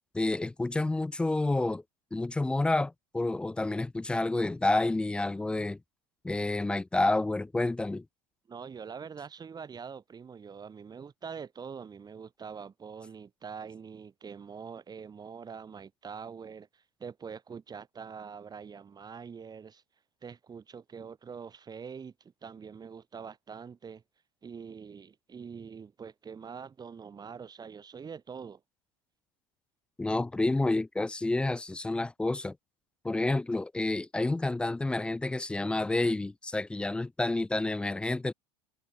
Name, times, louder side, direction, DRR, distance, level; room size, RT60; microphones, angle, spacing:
voice 1, 0.1-1.8 2.1-5.8 6.2-8.0 30.0-32.6 33.0-38.3, left 2 dB, 5° left, 0.3 m, -29 dB
voice 2, 8.5-19.8 20.2-24.0 24.4-28.6, right 6 dB, 20° right, 1.6 m, -44 dB
figure-of-eight pair, 75°, 19 cm